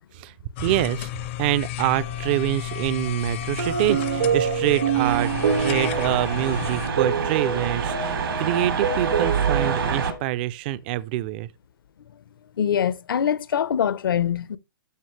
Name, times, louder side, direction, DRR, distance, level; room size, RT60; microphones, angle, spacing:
sound 1, 0.6-6.9, left 14 dB, 35° left, 0.6 m, -32 dB
voice 1, 0.6-1.1 1.4-5.3 5.6-11.5, right 15 dB, 25° right, 0.4 m, -25 dB
sound 2, 2.0-10.2, right 6 dB, 75° right, 1.9 m, -27 dB
sound 3, 5.0-10.1, right 6 dB, 90° right, 2.9 m, -27 dB
voice 2, 12.6-14.6, left 8 dB, 70° left, 0.8 m, -23 dB
12.0 x 5.1 x 3.2 m
hypercardioid pair, 165°, 12 cm